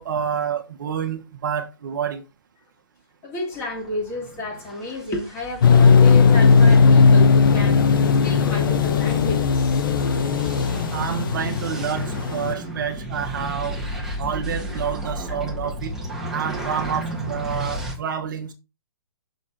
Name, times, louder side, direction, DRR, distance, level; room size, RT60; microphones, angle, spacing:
voice 1, 0.0-2.2 10.9-13.8 14.2-15.9 16.3-18.5, right 8 dB, 50° right, 1.3 m, -28 dB
voice 2, 3.2-7.9 8.2-9.9, left 1 dB, 20° left, 3.2 m, -31 dB
sound 1, 3.6-17.9, right 1 dB, 5° right, 1.6 m, -33 dB
sound 2, 5.6-12.5, left 5 dB, 55° left, 0.9 m, -16 dB
6.5 x 6.4 x 4.3 m
hypercardioid pair, 150°, 13 cm